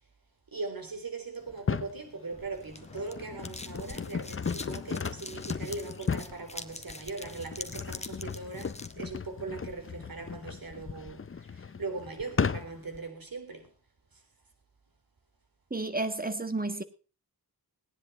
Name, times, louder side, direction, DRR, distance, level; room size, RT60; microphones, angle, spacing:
voice 1, 0.5-13.7, right 3 dB, 60° right, 3.9 m, -40 dB
sound 1, 1.5-2.0 2.6-13.0, left 6 dB, 35° left, 0.6 m, -36 dB
sound 2, 2.3-8.9, left 2 dB, 15° left, 1.3 m, -45 dB
voice 2, 15.7-16.8, right 2 dB, 20° right, 1.7 m, -31 dB
18.0 x 10.0 x 4.3 m
wide cardioid pair, 70°, 39 cm